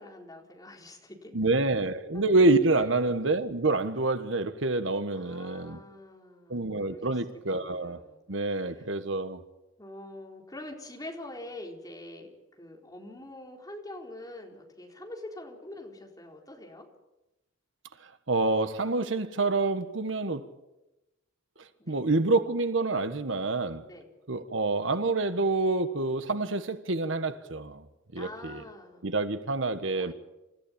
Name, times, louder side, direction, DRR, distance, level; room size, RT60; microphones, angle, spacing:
voice 1, 0.0-1.5 2.1-2.2 2.8-2.9 5.1-7.2 7.5-8.9 9.8-16.9 21.8-22.0 23.8-24.1 28.2-29.1 30.0-30.1, left 1 dB, 20° left, 4.2 m, -45 dB
voice 2, 1.3-5.8 6.5-8.0 8.3-9.4 18.3-20.4 21.9-23.8 24.3-27.9 28.1-28.6 29.0-30.1, right 2 dB, 75° right, 1.4 m, -27 dB
28.0 x 15.0 x 8.9 m
head